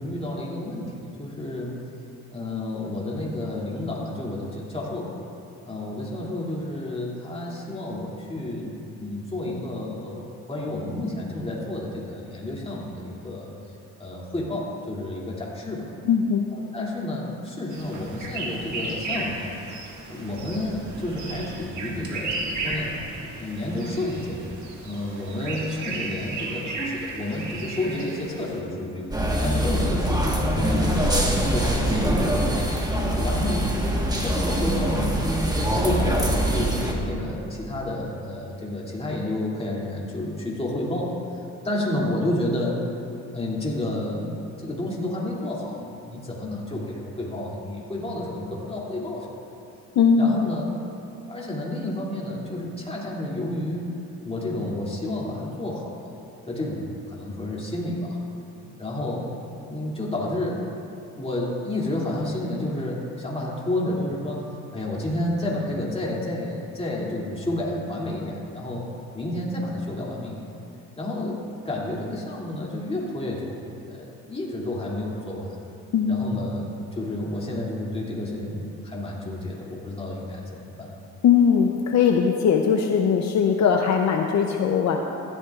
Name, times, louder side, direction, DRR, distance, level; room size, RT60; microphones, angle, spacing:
voice 1, 0.0-1.8 2.3-5.1 5.6-13.5 14.0-15.9 16.5-19.6 20.1-22.9 23.4-24.5 24.8-29.1 29.4-31.1 31.5-32.3 32.9-33.6 34.1-35.2 35.7-41.1 41.6-42.8 43.3-49.3 50.2-50.7 51.3-53.9 54.2-56.1 56.5-58.2 58.8-59.3 59.7-60.6 61.2-68.8 69.1-70.5 71.0-73.6 73.9-75.5 76.1-80.9, left 1 dB, 20° left, -4 dB, 2.6 m, -30 dB
voice 2, 16.1-16.5 50.0-50.4 75.9-76.4 81.2-85.0, left 7 dB, 65° left, 3 dB, 0.7 m, -20 dB
sound 1, 17.7-28.6, right 2 dB, 70° right, 1.8 m, -34 dB
sound 2, 29.1-36.9, right 1 dB, 15° right, 1.4 m, -23 dB
15.5 x 12.0 x 2.4 m, 2.7 s
cardioid pair, 90°, 30 cm